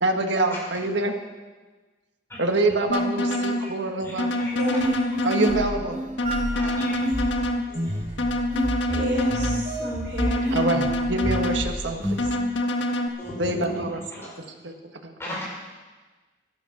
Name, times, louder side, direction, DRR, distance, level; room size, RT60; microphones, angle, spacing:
voice 1, 0.0-1.1 2.4-4.3 5.2-6.0 10.5-12.2 13.4-14.0 14.6-14.7 15.0-15.4, right 2 dB, 75° right, 4 dB, 1.6 m, -25 dB
sound 1, 2.9-3.6 4.2-5.6 6.2-7.6 8.2-9.6 10.2-11.6 12.2-13.1, left 1 dB, 75° left, 1.6 m, -26 dB
voice 2, 4.0-4.7 6.5-7.1 7.7-7.9 13.2-13.8 14.1-14.3 15.2-15.4, equal, 15° left, -5 dB, 5.5 m, -36 dB
voice 3, 4.5-5.0 8.9-10.5 14.2-14.3, right 1 dB, 55° right, -8 dB, 4.8 m, -30 dB
sound 2, 4.8-12.3, equal, 40° right, 4.4 m, -30 dB
12.5 x 11.5 x 7.2 m, 1.3 s
head